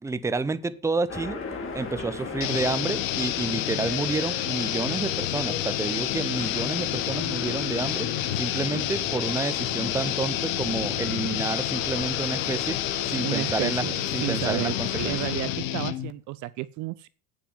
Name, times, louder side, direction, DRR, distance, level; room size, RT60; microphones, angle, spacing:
voice 1, 0.0-1.4 1.7-8.1 8.3-15.2, right 3 dB, 5° right, 0.7 m, -30 dB
sound 1, 1.1-15.6, left 4 dB, 30° left, 2.9 m, -38 dB
sound 2, 2.4-16.1, left 13 dB, 70° left, 1.3 m, -29 dB
voice 2, 13.2-13.9 14.2-17.1, right 17 dB, 45° right, 0.5 m, -32 dB
9.0 x 7.2 x 7.4 m
supercardioid pair, 105°, 41 cm